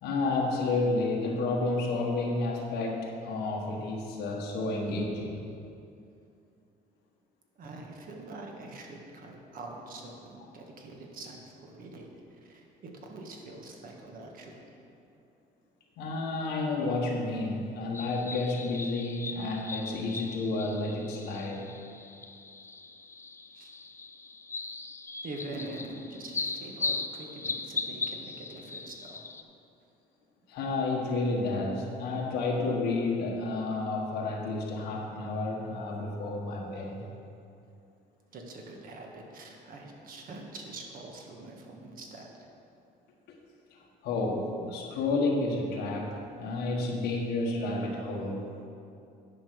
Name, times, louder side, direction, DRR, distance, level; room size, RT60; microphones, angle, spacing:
voice 1, 0.0-5.4 16.0-21.7 30.5-37.1 43.3-43.4 43.7-48.5, left 2 dB, 85° left, -2 dB, 1.3 m, -31 dB
voice 2, 7.6-12.1 12.4-14.6 23.5-23.7 25.2-29.2 38.3-42.3, right 2 dB, 55° right, 1 dB, 1.6 m, -44 dB
sound 1, 17.9-29.4, left 3 dB, 15° left, 0.4 m, -38 dB
10.5 x 5.2 x 6.1 m, 2.6 s
cardioid pair, 110°, 17 cm